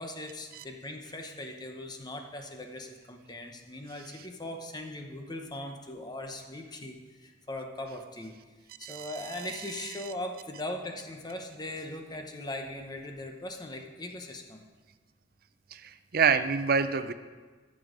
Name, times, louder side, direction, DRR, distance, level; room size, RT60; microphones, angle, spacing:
voice 1, 0.0-8.3 8.8-14.6, left 1 dB, 25° left, 4 dB, 0.9 m, -40 dB
voice 2, 16.1-17.1, right 5 dB, 55° right, 12 dB, 0.5 m, -25 dB
14.0 x 6.3 x 5.1 m, 1.4 s
head